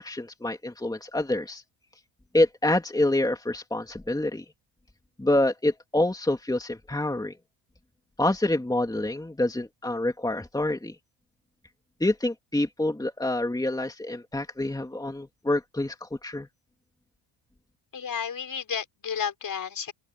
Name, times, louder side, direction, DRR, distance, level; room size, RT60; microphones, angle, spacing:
voice 1, 0.0-1.6 2.3-4.4 5.2-7.3 8.2-10.9 12.0-16.5, left 1 dB, 10° left, 3.0 m, -27 dB
voice 2, 17.9-19.9, left 7 dB, 45° left, 5.9 m, -32 dB
open air
cardioid pair, 90°, 48 cm